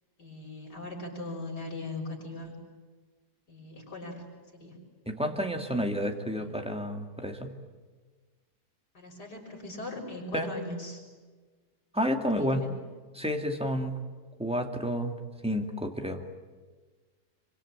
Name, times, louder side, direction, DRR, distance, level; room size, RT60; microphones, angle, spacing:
voice 1, 0.2-2.5 3.5-4.3 4.5-4.8 6.4-6.5 8.9-11.0 12.4-12.7, left 2 dB, 75° left, 0 dB, 6.8 m, -39 dB
voice 2, 5.1-7.5 10.3-10.5 11.9-12.6 13.2-14.0 14.4-15.1 15.4-16.2, equal, 5° right, 4 dB, 2.2 m, -30 dB
27.0 x 25.0 x 8.9 m, 1.4 s
omnidirectional pair, 1.8 m